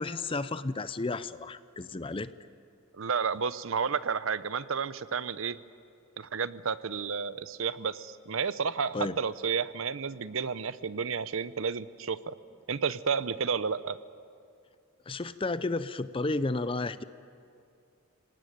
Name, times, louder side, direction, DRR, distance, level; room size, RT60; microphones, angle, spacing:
voice 1, 0.0-2.3 8.9-9.2 15.1-17.0, left 3 dB, 25° left, 14 dB, 0.5 m, -32 dB
voice 2, 2.9-5.6 6.2-12.3 12.7-14.0, right 6 dB, 65° right, 15 dB, 0.7 m, -31 dB
26.0 x 18.5 x 9.3 m, 2.4 s
head